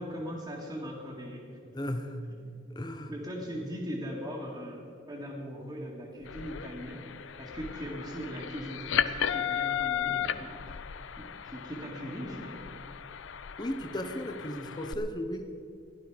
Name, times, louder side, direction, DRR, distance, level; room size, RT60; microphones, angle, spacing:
voice 1, 0.0-1.9 2.4-2.5 2.9-4.8 5.1-10.6 11.2-12.7, equal, 20° right, -6 dB, 2.1 m, -40 dB
voice 2, 1.7-2.2 2.8-3.1 13.6-15.5, left 1 dB, 20° left, 6 dB, 0.8 m, -35 dB
sound 1, 6.2-14.9, left 9 dB, 80° left, 0.5 m, -35 dB
16.0 x 12.0 x 5.0 m, 2.7 s
head